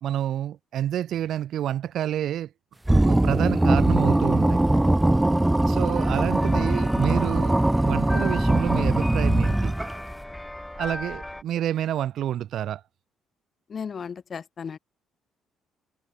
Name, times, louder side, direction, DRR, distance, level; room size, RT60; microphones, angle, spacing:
voice 1, 0.0-2.5 3.0-4.6 5.7-9.7 10.8-12.8, right 11 dB, 70° right, 2.5 m, -28 dB
sound 1, 2.9-10.1, right 1 dB, 10° right, 0.3 m, -21 dB
sound 2, 5.9-11.4, left 1 dB, 10° left, 4.9 m, -38 dB
voice 2, 13.7-14.8, left 6 dB, 45° left, 0.6 m, -35 dB
supercardioid pair, 65°, 0 cm